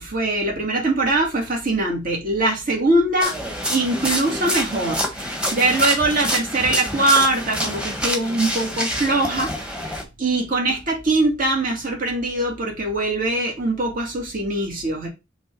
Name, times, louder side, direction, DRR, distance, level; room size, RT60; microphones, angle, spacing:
voice 1, 0.0-3.3 3.7-9.9 10.2-15.1, right 2 dB, 45° right, 2.4 m, -22 dB
sound 1, 3.2-10.0, equal, 5° right, 1.4 m, -27 dB
5.9 x 3.7 x 5.4 m
head